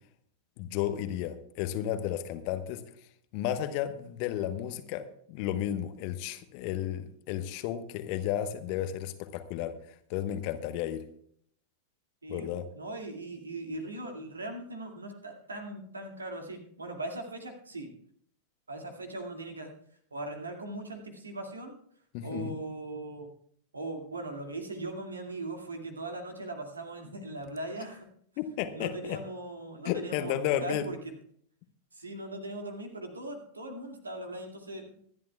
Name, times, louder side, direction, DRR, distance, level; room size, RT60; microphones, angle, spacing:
voice 1, 0.6-2.8 3.3-5.0 5.3-9.7 10.1-11.0 12.3-12.7 22.1-22.6 28.4-29.2 29.8-30.9, left 11 dB, 45° left, 10 dB, 1.1 m, -33 dB
voice 2, 12.7-17.9 18.7-19.7 20.1-21.7 22.2-23.3 23.7-28.1 28.7-31.1 31.9-35.0, right 2 dB, 75° right, 3 dB, 2.2 m, -39 dB
25.0 x 11.0 x 2.3 m, 0.65 s
figure-of-eight pair, 90°, 0 cm